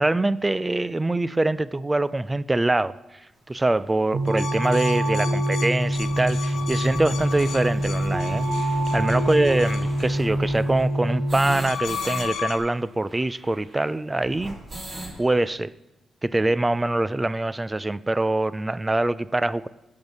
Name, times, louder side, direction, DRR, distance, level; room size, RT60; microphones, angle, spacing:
voice 1, 0.0-3.0 3.5-8.5 8.9-14.6 15.2-15.7 16.2-19.7, right 2 dB, 15° right, 0.3 m, -24 dB
sound 1, 3.6-3.7 4.3-4.4 4.7-4.8 5.1-5.2 5.6-12.2 12.5-12.6 12.8-15.2, right 1 dB, 30° right, 3.3 m, -39 dB
sound 2, 4.1-11.5, right 1 dB, 55° right, 1.4 m, -25 dB
sound 3, 4.3-10.1 11.4-12.6, left 7 dB, 90° left, 1.3 m, -35 dB
12.0 x 5.2 x 6.2 m
cardioid pair, 125°, 0 cm